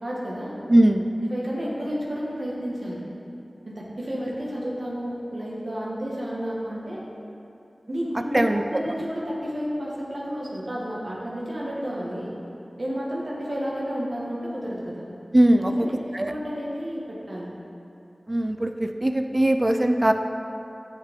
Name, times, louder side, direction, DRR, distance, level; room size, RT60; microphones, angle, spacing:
voice 1, 0.0-0.5 1.3-3.0 3.6-7.0 7.9-12.3 12.8-15.0 15.6-15.9 16.3-17.5, equal, 60° right, -5 dB, 1.6 m, -31 dB
voice 2, 0.7-1.1 8.3-8.6 15.3-15.7 16.1-16.3 18.3-20.1, right 1 dB, 35° right, 6 dB, 0.5 m, -20 dB
11.0 x 6.4 x 3.7 m, 2.7 s
wide cardioid pair, 60°, 0 cm